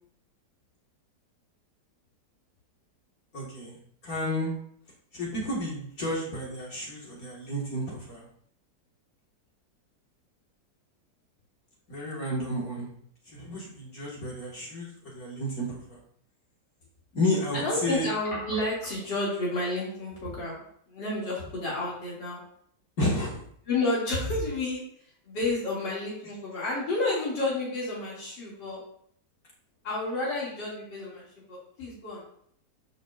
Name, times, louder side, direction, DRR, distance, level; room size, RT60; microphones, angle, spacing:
voice 1, 3.3-3.8 4.0-4.5 5.1-8.3 11.9-12.9 13.3-16.0 17.1-18.1 23.0-23.4, left 1 dB, 55° left, -5 dB, 2.3 m, -31 dB
voice 2, 17.6-22.4 23.7-24.8 25.2-28.8 29.8-32.2, left 2 dB, 85° left, -7 dB, 3.2 m, -31 dB
12.0 x 6.2 x 2.5 m, 0.66 s
omnidirectional pair, 1.9 m